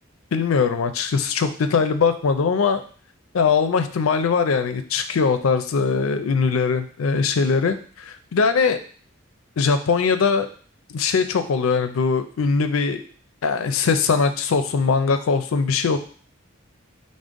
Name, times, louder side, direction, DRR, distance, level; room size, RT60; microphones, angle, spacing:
voice 1, 0.3-2.8 3.3-8.8 9.6-10.5 10.9-13.0 13.4-16.0, left 5 dB, 90° left, 9 dB, 0.4 m, -21 dB
5.1 x 2.1 x 3.6 m, 0.43 s
head